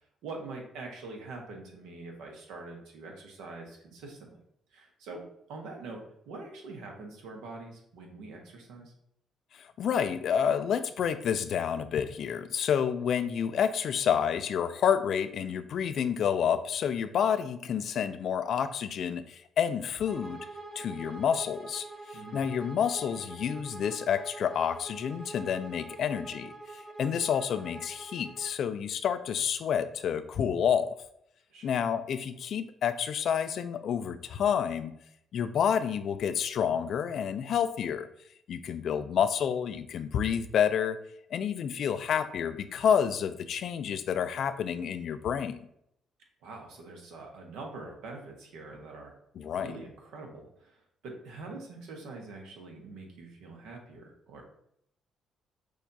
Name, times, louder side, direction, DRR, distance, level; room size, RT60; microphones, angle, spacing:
voice 1, 0.2-4.4 4.7-8.9 22.1-22.4 31.5-31.8 46.4-49.1 49.4-54.4, right 3 dB, 85° right, 1 dB, 1.0 m, -44 dB
voice 2, 9.5-20.5 20.8-21.9 22.3-31.0 31.6-35.0 35.3-38.1 38.5-41.0 41.3-45.6 49.4-49.7, left 8 dB, 65° left, 12 dB, 0.3 m, -29 dB
Bowed string instrument, 20.1-28.6, right 2 dB, 5° right, 0.8 m, -45 dB
6.2 x 2.4 x 2.7 m, 0.72 s
cardioid pair, 75°, 0 cm